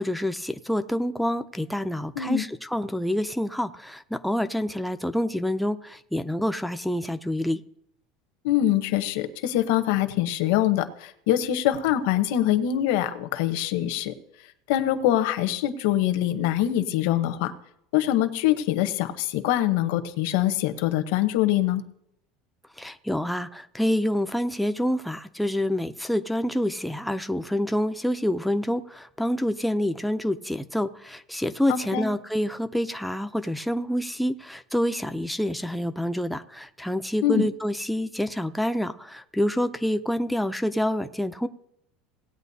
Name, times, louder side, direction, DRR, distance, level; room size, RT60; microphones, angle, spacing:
voice 1, 0.0-7.6 22.8-41.5, equal, ahead, 8 dB, 0.4 m, -27 dB
voice 2, 8.4-14.1 14.7-17.5 17.9-21.8 31.7-32.1 37.2-37.5, left 12 dB, 65° left, 9 dB, 0.9 m, -24 dB
18.0 x 9.0 x 2.7 m, 0.75 s
cardioid pair, 165°, 0 cm